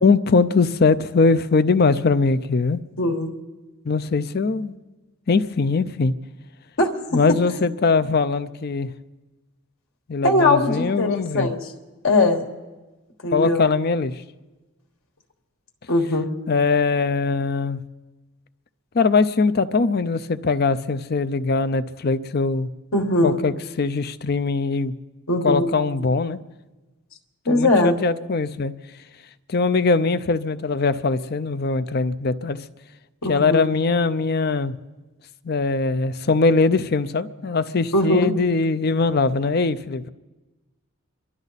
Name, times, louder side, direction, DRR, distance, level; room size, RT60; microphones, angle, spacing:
voice 1, 0.0-2.8 3.9-4.7 5.3-6.1 7.1-8.9 10.1-11.5 13.3-14.1 16.5-17.8 18.9-22.7 23.2-24.9 25.4-26.4 27.5-28.7 29.5-32.6 33.3-34.7 35.4-40.1, left 4 dB, 45° left, 14 dB, 0.5 m, -21 dB
voice 2, 3.0-3.3 6.8-6.9 7.3-7.4 10.2-11.6 12.0-12.4 13.2-13.6 15.9-16.3 22.9-23.4 25.3-25.7 27.5-28.0 33.2-33.7 37.9-38.3, left 2 dB, 65° left, 2 dB, 1.6 m, -20 dB
28.0 x 12.0 x 4.1 m, 1.2 s
head